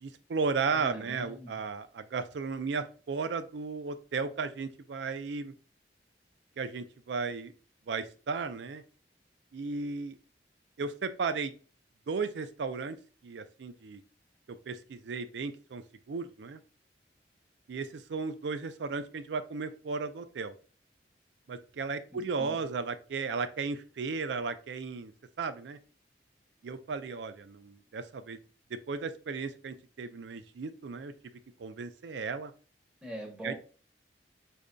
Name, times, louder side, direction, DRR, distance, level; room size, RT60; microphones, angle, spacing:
voice 1, 0.0-5.5 6.6-7.5 7.9-8.8 9.5-10.2 10.8-11.5 12.1-13.0 13.2-14.0 14.5-16.6 17.7-20.5 21.5-25.1 25.4-25.8 26.6-28.4 28.9-31.1 31.6-32.5 33.4-33.5, right 4 dB, 80° right, 11 dB, 0.4 m, -35 dB
voice 2, 0.7-1.6 22.1-22.5 33.0-33.5, right 1 dB, 5° right, -1 dB, 0.9 m, -42 dB
4.9 x 2.6 x 2.2 m, 0.38 s
head